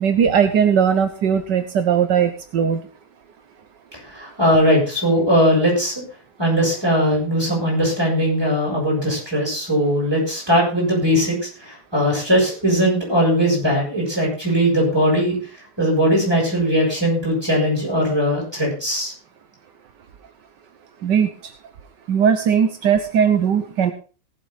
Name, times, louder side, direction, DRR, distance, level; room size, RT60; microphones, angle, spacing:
voice 1, 0.0-2.8 21.0-21.3 22.1-23.9, right 7 dB, 75° right, 7 dB, 1.6 m, -18 dB
voice 2, 4.1-5.9 6.4-15.4 15.8-19.1, equal, 15° right, -2 dB, 7.1 m, -19 dB
18.5 x 7.9 x 4.0 m, 0.36 s
omnidirectional pair, 1.9 m